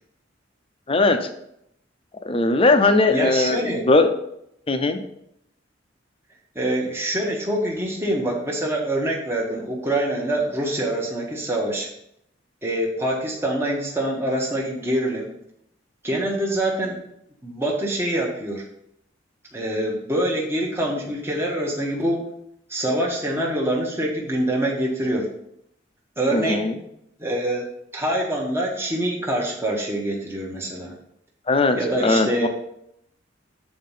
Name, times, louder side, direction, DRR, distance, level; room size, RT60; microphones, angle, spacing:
voice 1, 0.9-1.2 2.3-4.1 4.7-5.0 26.3-26.7 31.5-32.5, left 3 dB, 30° left, 8 dB, 0.7 m, -19 dB
voice 2, 3.1-3.8 6.5-11.9 12.6-15.4 16.0-17.0 17.4-18.6 19.5-22.3 22.7-25.3 26.2-26.7 27.2-27.6 27.9-30.9 31.7-32.5, right 1 dB, 15° right, -2 dB, 1.1 m, -25 dB
7.6 x 4.3 x 5.6 m, 0.76 s
head